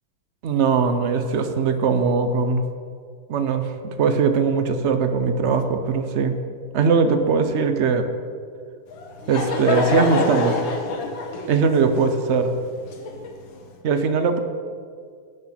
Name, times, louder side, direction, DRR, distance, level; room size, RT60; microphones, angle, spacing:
voice 1, 0.4-2.7 3.3-6.4 6.7-8.1 9.3-10.6 11.5-12.5 13.8-14.4, right 5 dB, 75° right, 8 dB, 0.6 m, -20 dB
Laughter / Crowd, 8.9-13.6, left 4 dB, 70° left, 1.9 m, -26 dB
18.0 x 6.2 x 5.7 m, 2.2 s
omnidirectional pair, 2.2 m